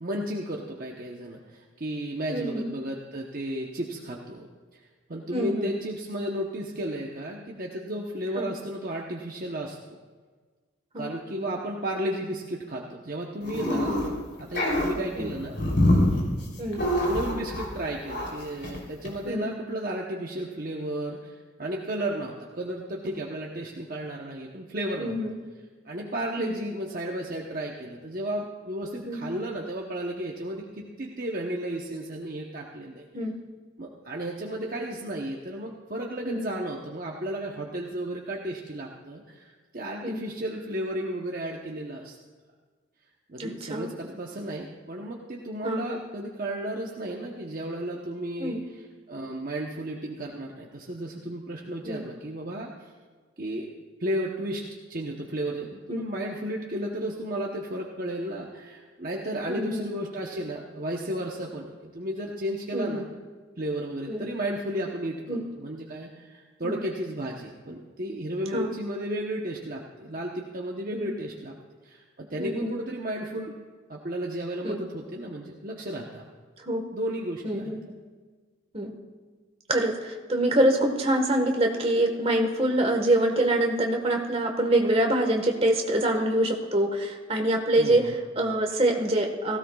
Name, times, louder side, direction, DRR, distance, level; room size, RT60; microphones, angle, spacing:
voice 1, 0.0-4.5 4.7-4.8 5.1-9.8 11.0-13.9 14.4-15.6 16.8-25.2 25.8-33.0 33.8-42.2 43.3-52.9 53.4-53.7 54.0-54.6 54.9-63.0 63.6-71.5 71.8-73.5 73.9-76.2 76.9-77.7 87.8-88.1, right 1 dB, 45° right, -1 dB, 0.9 m, -33 dB
voice 2, 2.3-2.7 5.3-5.8 8.3-8.5 10.9-11.1 13.7-14.0 15.2-15.3 16.6-16.8 19.2-19.5 25.0-25.3 26.4-26.5 29.0-29.2 33.1-33.3 36.2-36.4 40.0-40.2 43.4-43.9 45.6-46.0 48.4-48.6 51.8-52.0 55.9-56.0 59.5-59.8 62.7-63.0 64.1-64.3 65.3-65.4 66.6-66.8 68.5-68.7 70.9-71.1 72.4-72.7 74.6-74.8 76.6-76.8 77.4-77.8 78.7-78.9 79.7-89.6, right 1 dB, 30° right, 2 dB, 1.4 m, -25 dB
sound 1, 13.4-14.1 14.4-17.8 18.1-18.3 18.6-18.8 19.0-19.1, left 1 dB, 55° left, 3.3 m, -25 dB
17.5 x 16.0 x 2.4 m, 1.5 s
head